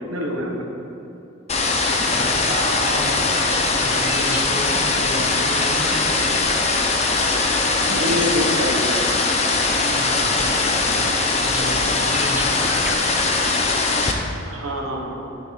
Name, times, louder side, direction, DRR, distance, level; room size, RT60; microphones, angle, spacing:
voice 1, 0.1-0.7 4.9-5.2 7.8-8.9 14.5-15.1, left 1 dB, 80° right, 0 dB, 1.4 m, -26 dB
sound 1, 1.5-14.1, left 3 dB, 30° left, 0.7 m, -21 dB
sound 2, 1.5-13.9, right 1 dB, 10° right, 0.5 m, -35 dB
voice 2, 2.1-3.3 3.7-6.2 9.9-12.9, right 1 dB, 60° right, -4 dB, 2.1 m, -32 dB
12.0 x 6.5 x 4.1 m, 3.0 s
head